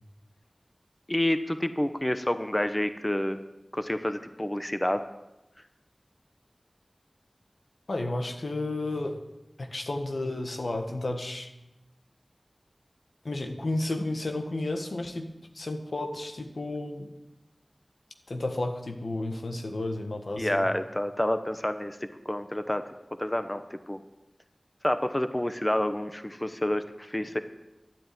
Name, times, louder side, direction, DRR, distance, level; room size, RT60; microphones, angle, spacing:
voice 1, 1.1-3.4 3.7-5.0 20.4-22.8 23.2-24.0 24.8-27.4, left 1 dB, 25° left, 9 dB, 0.9 m, -28 dB
voice 2, 7.9-9.2 9.6-11.5 13.2-15.3 15.5-17.1 18.3-20.7, left 2 dB, 85° left, 4 dB, 1.5 m, -32 dB
12.5 x 8.5 x 9.2 m, 0.98 s
wide cardioid pair, 40°, 0 cm